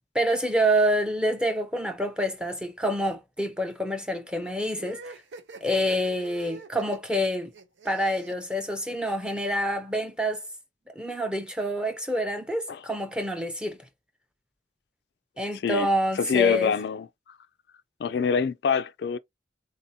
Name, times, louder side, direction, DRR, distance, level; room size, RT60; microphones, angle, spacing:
voice 1, 0.1-5.2 5.6-7.5 7.8-10.4 11.0-13.8 15.4-16.7, equal, 5° right, 0.6 m, -27 dB
sound 1, 4.7-9.4, right 4 dB, 90° right, 0.7 m, -44 dB
voice 2, 15.5-15.9 16.2-17.1 18.0-19.2, left 6 dB, 70° left, 0.3 m, -25 dB
3.8 x 2.7 x 2.7 m
head